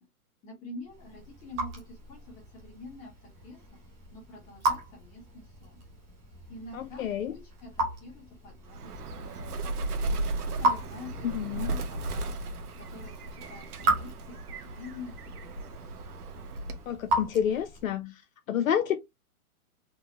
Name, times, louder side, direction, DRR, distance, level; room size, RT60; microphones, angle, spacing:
voice 1, 0.4-3.6 4.1-5.8 6.5-9.8 10.6-11.8 12.2-12.3 12.8-15.6, left 2 dB, 15° left, 1.6 m, -46 dB
Raindrop / Drip, 0.8-18.0, right 2 dB, 10° right, 0.5 m, -36 dB
voice 2, 6.7-7.3 11.2-11.7 16.9-18.2 18.5-19.0, left 9 dB, 65° left, 0.7 m, -29 dB
Bird, 8.7-16.9, right 2 dB, 80° right, 1.1 m, -35 dB
3.9 x 2.6 x 3.1 m
hypercardioid pair, 160°, 45 cm